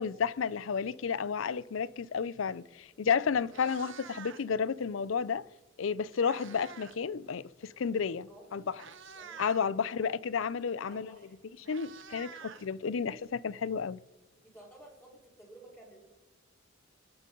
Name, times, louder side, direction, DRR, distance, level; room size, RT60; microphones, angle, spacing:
voice 1, 0.0-5.5 5.8-8.6 9.4-11.1 11.7-12.3 12.6-14.0, left 6 dB, 70° left, 0.5 m, -32 dB
Meow, 2.9-3.0 3.4-4.6 5.7-7.0 7.3-7.6 8.3-8.4 8.7-9.7 11.0-11.1 11.3-13.2, right 6 dB, 65° right, 1.0 m, -48 dB
voice 2, 3.1-3.7 8.3-8.8 9.1-10.1 10.8-11.3 12.0-13.2 14.3-16.0, right 1 dB, 15° left, 4.1 m, -55 dB
27.5 x 9.2 x 3.8 m
head